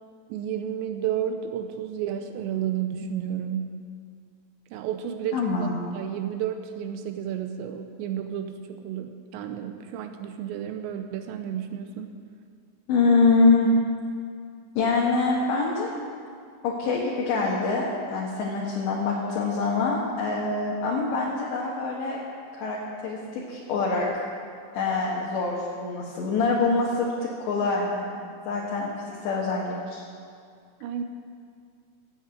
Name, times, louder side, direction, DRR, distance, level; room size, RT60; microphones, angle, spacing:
voice 1, 0.3-3.8 4.7-5.7 5.9-12.2 30.8-31.0, right 9 dB, 85° right, 7 dB, 2.5 m, -32 dB
voice 2, 5.3-5.8 12.9-13.7 14.8-15.9 16.6-22.2 22.5-22.8 23.0-24.1 24.7-30.0, left 3 dB, 70° left, -4 dB, 3.4 m, -25 dB
15.5 x 8.4 x 8.2 m, 2.3 s
omnidirectional pair, 5.9 m